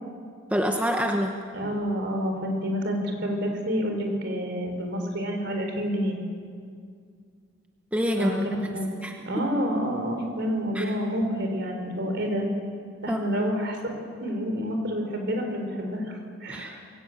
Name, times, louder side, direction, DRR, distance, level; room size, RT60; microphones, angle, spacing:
voice 1, 0.5-1.3 7.9-9.2 10.7-10.9 13.1-13.2 16.5-16.8, equal, 5° right, 2 dB, 1.0 m, -27 dB
voice 2, 1.5-6.2 8.2-8.9 9.2-12.5 13.0-14.0 14.2-16.8, equal, 55° right, 4 dB, 4.1 m, -28 dB
22.5 x 18.0 x 8.0 m, 2.1 s
head